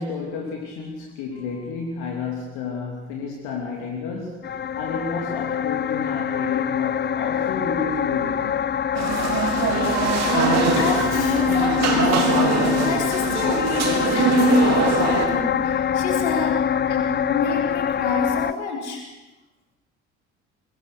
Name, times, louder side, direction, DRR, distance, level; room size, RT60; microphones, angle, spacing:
voice 1, 0.0-8.6, left 4 dB, 65° left, 0 dB, 3.0 m, -31 dB
sound 1, 4.4-18.5, left 8 dB, 30° left, 0.8 m, -24 dB
sound 2, 8.9-15.3, right 5 dB, 50° right, 3.5 m, -23 dB
voice 2, 10.0-16.6 16.8-19.0, left 3 dB, 80° left, 0 dB, 4.2 m, -27 dB
22.5 x 20.0 x 6.5 m, 1.1 s
figure-of-eight pair, 55°, 34 cm